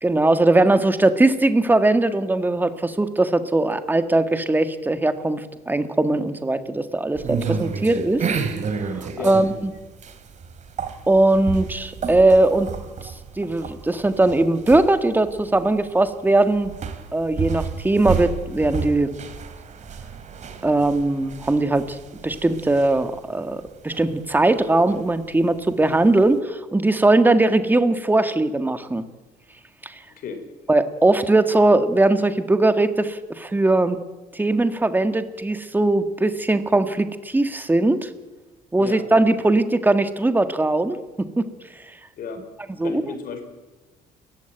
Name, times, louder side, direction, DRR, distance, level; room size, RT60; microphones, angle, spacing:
voice 1, 0.0-8.2 9.2-9.7 11.1-12.7 13.0-16.7 17.1-19.1 20.6-22.0 22.2-29.0 29.8-29.9 30.7-34.0 34.3-38.1 38.7-41.5 42.8-43.0, right 2 dB, 10° right, 9 dB, 1.7 m, -20 dB
sound 1, 7.2-26.4, right 6 dB, 45° right, 2.9 m, -32 dB
voice 2, 42.8-43.4, left 6 dB, 60° left, 7 dB, 5.1 m, -33 dB
29.5 x 15.0 x 9.2 m, 1.3 s
cardioid pair, 110°, 17 cm